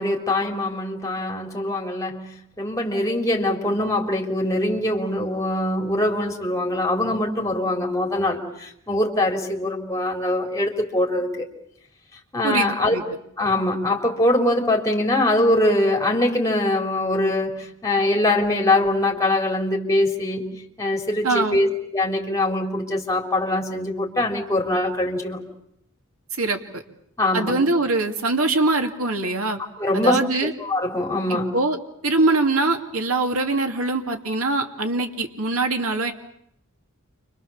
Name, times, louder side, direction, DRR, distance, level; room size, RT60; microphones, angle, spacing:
voice 1, 0.0-11.5 12.3-13.0 13.4-20.5 20.8-25.4 27.2-27.5 29.8-30.2 30.6-31.6, left 1 dB, 15° left, 1 dB, 3.9 m, -23 dB
voice 2, 12.4-13.0 21.2-21.6 26.4-26.8 27.3-29.6 29.9-30.5 31.3-31.8 32.0-36.1, right 2 dB, 75° right, 4 dB, 2.5 m, -23 dB
29.5 x 25.5 x 7.3 m, 0.74 s
head